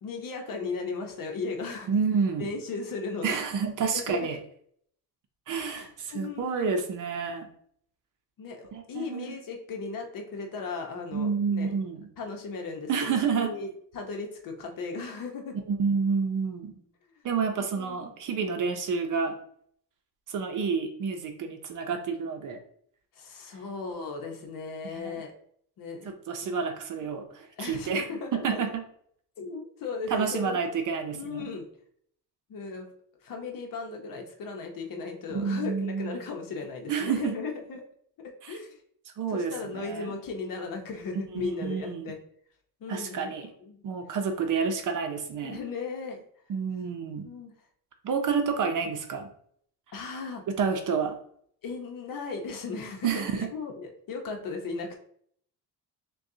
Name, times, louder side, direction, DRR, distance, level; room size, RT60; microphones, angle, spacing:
voice 1, 0.0-1.9 2.4-3.4 3.9-4.2 5.5-6.8 8.4-11.7 12.2-12.9 13.4-13.7 13.9-15.6 17.7-18.0 23.1-25.3 25.8-26.1 26.4-26.5 27.0-27.1 27.6-28.6 29.4-30.6 31.1-31.7 32.5-32.9 33.2-37.8 38.2-38.8 39.3-42.2 42.8-43.3 43.6-43.8 45.4-46.2 47.2-47.5 49.9-50.4 51.6-53.1 53.3-54.9, left 4 dB, 55° left, 3 dB, 0.9 m, -36 dB
voice 2, 1.9-2.5 3.2-4.4 5.5-7.5 8.7-9.4 11.1-12.1 12.9-13.5 15.7-16.7 17.2-19.3 20.3-22.6 24.8-25.2 26.0-28.0 28.3-28.8 30.1-31.5 35.3-36.2 36.9-37.4 38.4-38.6 39.2-40.1 41.3-42.1 42.9-43.5 43.8-45.6 46.5-47.3 48.0-49.3 50.6-51.2 53.0-53.5, right 5 dB, 50° right, 5 dB, 0.7 m, -29 dB
6.3 x 2.3 x 2.7 m, 0.64 s
cardioid pair, 145°, 41 cm